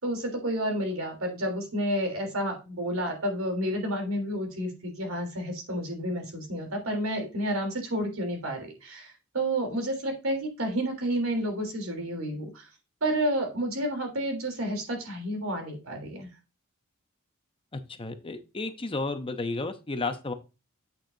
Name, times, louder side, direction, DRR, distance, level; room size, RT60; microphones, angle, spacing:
voice 1, 0.0-12.7 13.0-16.3, right 1 dB, 80° right, 3 dB, 3.3 m, -30 dB
voice 2, 17.7-20.3, left 3 dB, 25° left, 8 dB, 0.7 m, -32 dB
8.5 x 6.5 x 2.7 m, 0.29 s
head